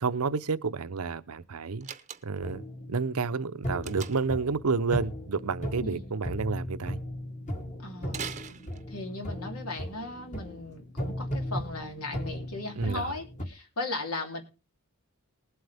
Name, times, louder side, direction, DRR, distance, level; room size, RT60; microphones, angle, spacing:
voice 1, 0.0-1.9 2.2-2.6 2.9-7.0 12.8-13.1, right 4 dB, 80° right, 0.7 m, -30 dB
Slam, 1.8-2.6 3.8-4.4 8.1-9.2, right 7 dB, 30° right, 0.8 m, -41 dB
sound 1, 2.4-13.5, equal, 35° left, 1.8 m, -37 dB
voice 2, 5.8-6.1 7.8-8.2 8.9-14.4, left 2 dB, 80° left, 3.0 m, -37 dB
20.0 x 7.9 x 3.4 m
head